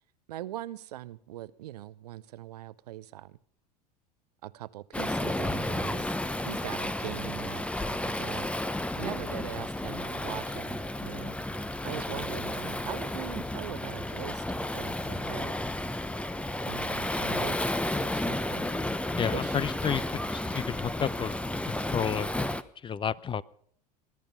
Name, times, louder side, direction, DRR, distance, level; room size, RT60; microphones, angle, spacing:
voice 1, 0.3-3.4 4.4-6.1 6.4-8.5 9.0-11.3 11.8-15.6 16.6-18.7 19.3-19.6, right 14 dB, 75° right, 0.7 m, -41 dB
Waves surf, 4.9-22.6, left 1 dB, 5° left, 0.9 m, -32 dB
voice 2, 19.2-21.4 21.7-22.3 22.8-23.4, left 8 dB, 25° left, 0.6 m, -31 dB
20.5 x 12.0 x 5.5 m
figure-of-eight pair, 75°, 20 cm